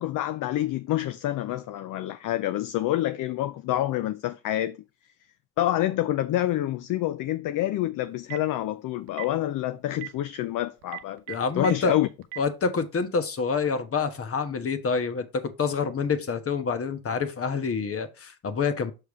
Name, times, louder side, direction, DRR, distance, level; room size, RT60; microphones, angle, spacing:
voice 1, 0.0-4.8 5.6-11.2 11.6-12.1, left 14 dB, 45° left, 0.5 m, -27 dB
Telephone, 8.1-8.5 9.1-9.3 9.9-10.1 10.8-11.7 12.2-12.4, right 21 dB, 85° right, 0.8 m, -36 dB
voice 2, 11.3-12.0 12.4-18.9, left 5 dB, 30° left, 1.2 m, -27 dB
6.8 x 4.6 x 3.6 m
supercardioid pair, 80°, 44 cm